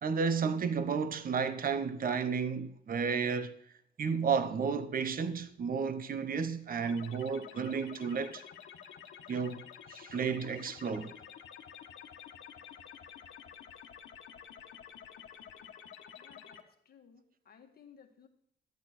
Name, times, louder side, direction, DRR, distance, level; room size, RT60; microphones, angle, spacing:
voice 1, 0.0-3.5 4.0-8.4 9.3-9.6 9.9-11.1, right 5 dB, 45° right, 1.0 m, -32 dB
sound 1, 6.8-16.6, left 8 dB, 75° left, 1.4 m, -50 dB
voice 2, 16.2-18.3, left 7 dB, 50° left, 1.9 m, -59 dB
13.5 x 8.8 x 4.3 m
cardioid pair, 90°, 20 cm